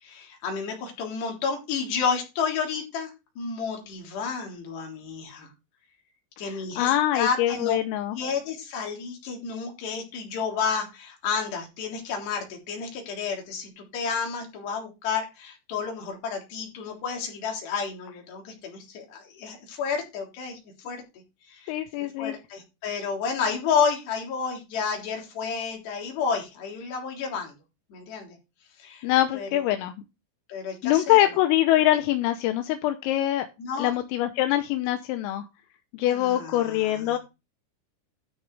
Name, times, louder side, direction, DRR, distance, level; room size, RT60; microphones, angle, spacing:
voice 1, 0.0-3.1 3.4-5.5 6.4-7.8 8.1-20.6 20.9-21.0 21.5-27.6 27.9-28.4 28.8-29.1 29.3-29.7 30.5-31.4 33.6-33.9 36.1-37.2, left 6 dB, 55° left, 1 dB, 5.3 m, -31 dB
voice 2, 6.4-8.2 21.7-22.4 29.0-29.9 30.8-33.5 33.8-35.5 35.9-37.2, left 14 dB, 85° left, 7 dB, 3.5 m, -24 dB
13.0 x 5.4 x 4.8 m, 0.26 s
omnidirectional pair, 6.0 m